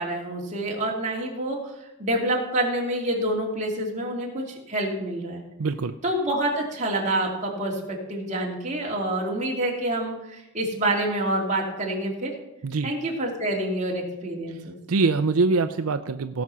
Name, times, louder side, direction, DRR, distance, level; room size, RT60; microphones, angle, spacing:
voice 1, 0.0-5.4 6.0-12.3 12.8-14.8, right 1 dB, 35° right, -1 dB, 2.6 m, -27 dB
voice 2, 5.6-6.0 12.6-12.9 14.5-14.6 14.9-16.4, right 3 dB, 85° right, 10 dB, 0.5 m, -24 dB
17.5 x 6.1 x 5.5 m, 0.94 s
head